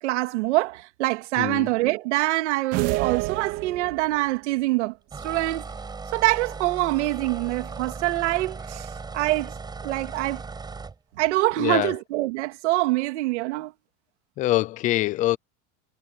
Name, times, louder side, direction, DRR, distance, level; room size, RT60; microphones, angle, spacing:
voice 1, 0.0-4.9 5.2-5.6 6.1-9.5 9.8-10.4 11.2-13.7, right 19 dB, 85° right, 2.7 m, -25 dB
voice 2, 1.4-1.7 11.6-11.9 14.4-15.4, left 16 dB, 25° left, 0.4 m, -24 dB
sound 1, 2.7-4.3, right 19 dB, 45° right, 2.1 m, -28 dB
sound 2, 5.1-11.0, right 4 dB, 10° right, 5.5 m, -37 dB
supercardioid pair, 165°, 34 cm